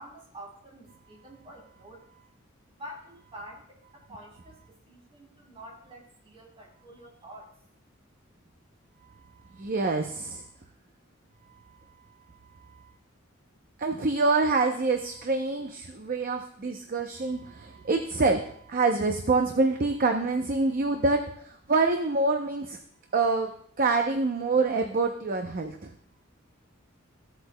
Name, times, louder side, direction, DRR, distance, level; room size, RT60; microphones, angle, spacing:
voice 1, 0.0-2.2 2.7-7.6, equal, 30° right, -1 dB, 2.9 m, -47 dB
voice 2, 9.5-10.5 12.6-12.9 13.8-22.8 23.1-23.5 23.8-25.9, right 3 dB, 45° right, 4 dB, 0.6 m, -26 dB
16.0 x 8.0 x 2.2 m, 0.64 s
head